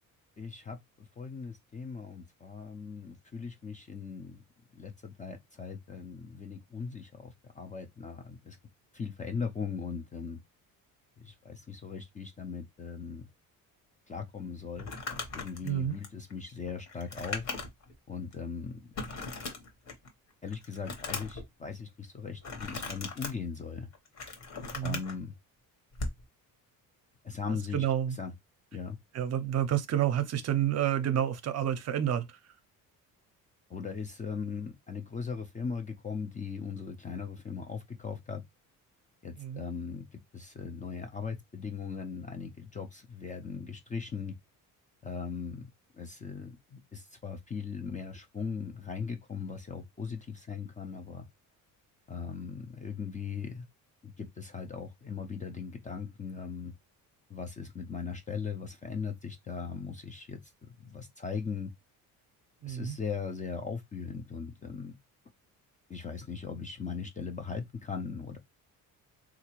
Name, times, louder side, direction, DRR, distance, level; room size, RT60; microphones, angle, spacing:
voice 1, 0.4-4.4 4.7-8.6 8.9-10.4 11.2-13.3 14.1-14.9 15.3-17.5 18.1-18.8 20.4-23.9 24.8-25.3 27.2-27.9 28.1-28.3 28.7-29.0 33.7-38.4 39.2-40.1 40.3-44.3 45.0-51.2 52.1-53.7 54.0-56.7 57.3-61.7 62.7-64.9 65.9-68.4, left 5 dB, 20° left, 0.4 m, -39 dB
Crumpling crinkling, 14.7-17.9 18.3-18.4 18.9-20.1 20.5-21.4 22.4-23.3 23.9-25.1 25.9-26.2, left 3 dB, 45° left, 1.0 m, -38 dB
voice 2, 15.6-16.0 24.7-25.0 27.7-28.2 29.1-32.4 39.4-39.6 62.6-63.0, right 10 dB, 45° right, 0.6 m, -29 dB
3.6 x 2.4 x 2.9 m
cardioid pair, 135°, 36 cm